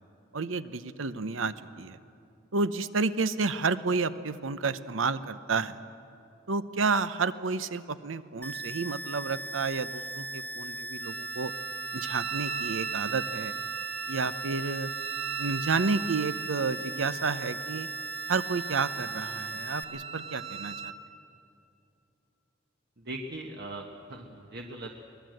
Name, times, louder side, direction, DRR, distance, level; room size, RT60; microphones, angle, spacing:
voice 1, 0.3-2.0 2.5-5.8 6.5-11.5 11.9-13.5 14.1-14.9 15.4-17.9 18.3-20.9, right 4 dB, 90° right, 13 dB, 0.8 m, -30 dB
sound 1, 8.4-19.8, right 2 dB, 10° left, 0.9 m, -38 dB
Wind instrument woodwind instrument, 11.0-21.0, right 8 dB, 30° right, 1.5 m, -39 dB
voice 2, 23.0-25.0, right 1 dB, 55° right, 2 dB, 1.3 m, -40 dB
23.0 x 19.0 x 7.8 m, 2.7 s
head